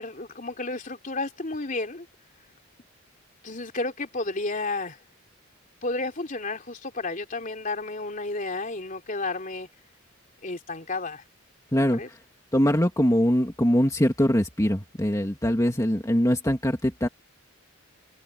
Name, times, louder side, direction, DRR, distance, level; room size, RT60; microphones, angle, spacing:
voice 1, 0.0-2.1 3.4-5.0 5.8-9.7 10.4-11.2 11.7-12.1, left 2 dB, 40° left, 3.3 m, -32 dB
voice 2, 11.7-12.2 12.5-17.1, equal, 15° left, 2.1 m, -22 dB
head